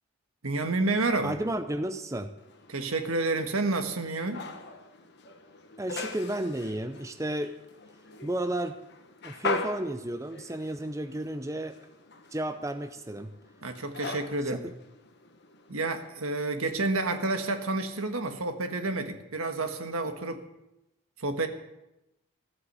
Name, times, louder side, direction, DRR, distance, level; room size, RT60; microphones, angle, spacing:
voice 1, 0.4-1.4 2.7-4.4 13.6-14.6 15.7-20.4 21.2-21.5, right 2 dB, 85° right, 7 dB, 1.5 m, -29 dB
voice 2, 1.2-2.3 5.8-7.5 8.2-8.8 9.2-11.8 12.3-13.3 14.5-14.7, right 1 dB, 15° right, 9 dB, 0.5 m, -32 dB
sound 1, 2.4-16.1, left 3 dB, 50° left, 1.3 m, -41 dB
15.0 x 8.3 x 8.1 m, 0.93 s
head